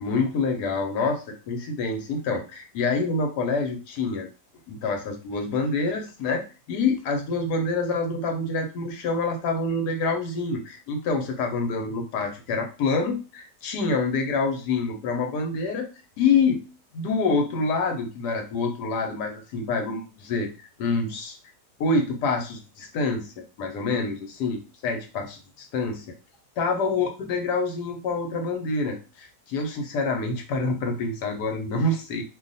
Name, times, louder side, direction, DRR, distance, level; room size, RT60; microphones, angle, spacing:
voice 1, 0.0-4.3 4.7-15.9 16.2-16.6 16.9-20.5 20.8-21.4 21.8-26.1 26.6-32.2, left 3 dB, 75° left, 4 dB, 1.3 m, -26 dB
2.8 x 2.4 x 3.9 m, 0.33 s
omnidirectional pair, 1.8 m